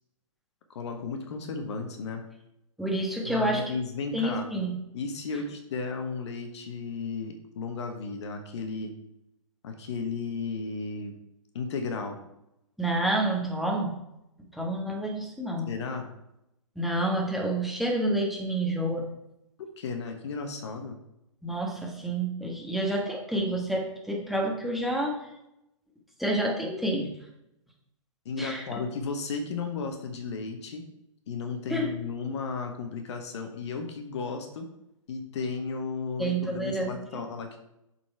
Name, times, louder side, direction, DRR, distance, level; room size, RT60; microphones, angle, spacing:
voice 1, 0.7-2.2 3.2-4.5 4.9-8.9 9.6-11.2 11.5-12.2 15.7-16.1 19.8-21.0 28.2-30.8 31.3-34.7 35.1-37.6, left 4 dB, 55° left, 5 dB, 1.3 m, -34 dB
voice 2, 2.8-3.6 4.1-4.8 12.8-13.9 14.5-15.7 16.7-19.1 21.4-25.2 26.2-27.1 28.4-28.6 31.7-31.9 36.2-37.2, right 1 dB, ahead, -2 dB, 1.4 m, -29 dB
7.2 x 4.5 x 4.6 m, 0.86 s
hypercardioid pair, 125°, 17 cm